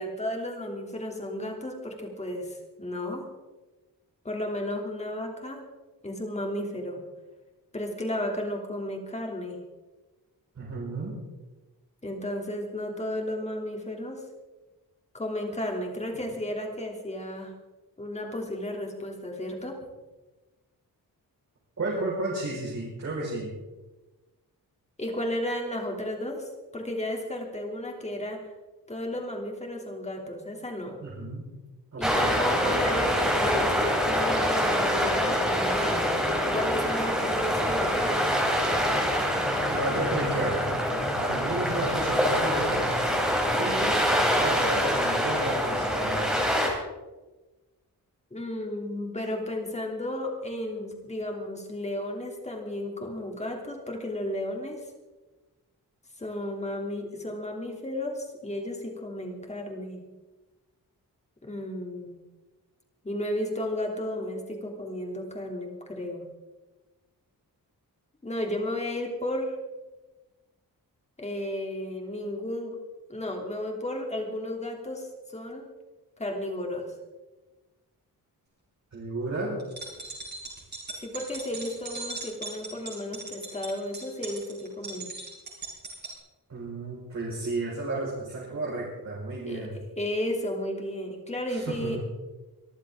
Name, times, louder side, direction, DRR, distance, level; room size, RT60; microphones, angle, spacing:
voice 1, 0.0-3.2 4.2-5.6 6.0-7.0 7.7-9.6 12.0-14.2 15.1-17.5 18.0-19.7 25.0-28.4 28.9-31.0 32.0-33.7 34.0-36.2 36.5-38.2 48.3-54.8 56.2-60.0 61.4-62.2 63.0-66.2 68.2-69.6 71.2-72.7 73.1-75.6 76.2-76.9 81.0-85.1 89.5-89.7 90.0-92.0, left 1 dB, 20° left, 1 dB, 3.0 m, -33 dB
voice 2, 10.5-11.2 21.8-23.5 31.0-31.4 31.9-32.4 39.7-40.6 41.2-43.0 43.6-43.9 44.4-46.4 78.9-79.6 86.5-89.8 91.5-92.0, right 2 dB, 50° right, -5 dB, 5.1 m, -32 dB
sound 1, 32.0-46.7, equal, ahead, 3.4 m, -25 dB
sound 2, 79.6-86.1, right 3 dB, 30° right, 5.7 m, -39 dB
24.5 x 14.5 x 3.8 m, 1.2 s
wide cardioid pair, 155°, 35 cm